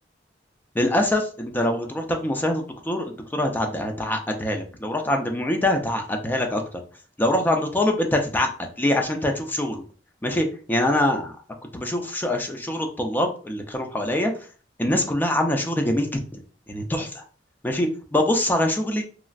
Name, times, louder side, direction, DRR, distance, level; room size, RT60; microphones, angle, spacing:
voice 1, 0.8-6.8 7.2-9.8 10.2-11.3 11.7-14.3 14.8-16.2 16.7-17.2 17.6-19.0, left 1 dB, 10° left, 3 dB, 0.4 m, -24 dB
3.0 x 2.4 x 2.4 m, 0.39 s
head